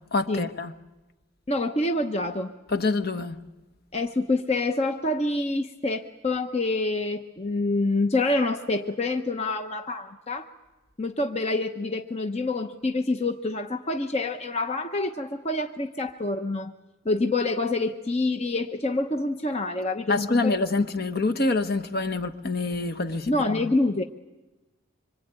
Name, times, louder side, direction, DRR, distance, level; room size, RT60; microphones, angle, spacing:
voice 1, 0.1-0.7 2.7-3.4 20.1-23.3, left 3 dB, 50° left, 1.2 m, -26 dB
voice 2, 1.5-2.5 3.9-10.5 11.0-16.7 17.0-20.5 23.3-24.0, left 2 dB, 30° left, 0.9 m, -27 dB
25.5 x 25.0 x 8.9 m
head